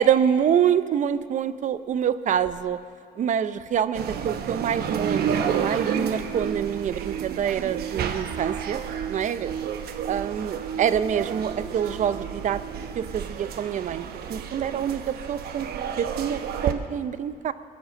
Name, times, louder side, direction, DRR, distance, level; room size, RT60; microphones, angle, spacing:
voice 1, 0.0-2.8 3.2-8.8 9.1-9.6 10.0-12.6 13.0-14.0 14.3-15.7 16.0-17.5, right 8 dB, 45° right, 14 dB, 0.6 m, -26 dB
sound 1, 3.9-16.7, right 7 dB, 65° right, 1.0 m, -31 dB
sound 2, 6.2-13.2, right 7 dB, 20° right, 3.3 m, -37 dB
21.0 x 7.9 x 7.3 m, 2.4 s
cardioid pair, 110°, 17 cm